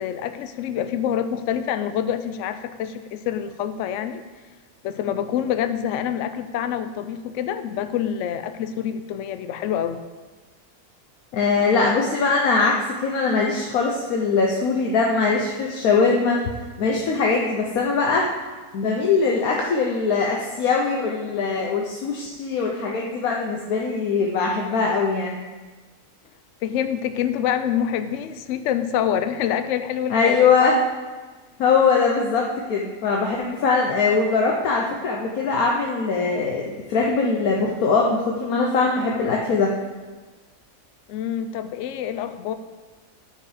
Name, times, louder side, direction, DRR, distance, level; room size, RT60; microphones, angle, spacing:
voice 1, 0.0-4.2 4.8-10.0 26.6-30.7 41.1-42.5, left 9 dB, 70° left, 10 dB, 0.8 m, -26 dB
voice 2, 11.3-16.4 16.8-18.3 18.7-25.4 30.1-30.8 31.6-39.7, left 4 dB, 90° left, 0 dB, 1.2 m, -21 dB
10.0 x 4.7 x 4.9 m, 1.3 s
omnidirectional pair, 1.5 m